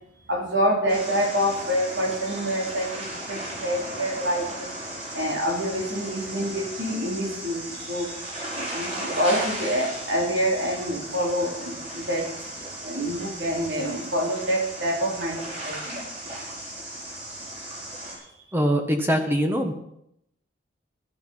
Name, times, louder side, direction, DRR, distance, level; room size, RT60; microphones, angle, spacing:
voice 1, 0.3-4.7 5.1-12.3 12.8-16.0 18.2-18.3, equal, 70° right, 0 dB, 3.6 m, -27 dB
sound 1, 0.9-18.2, right 1 dB, 35° right, 4.9 m, -36 dB
voice 2, 18.5-19.7, equal, 10° right, 4 dB, 1.2 m, -23 dB
12.5 x 11.5 x 5.6 m, 0.76 s
head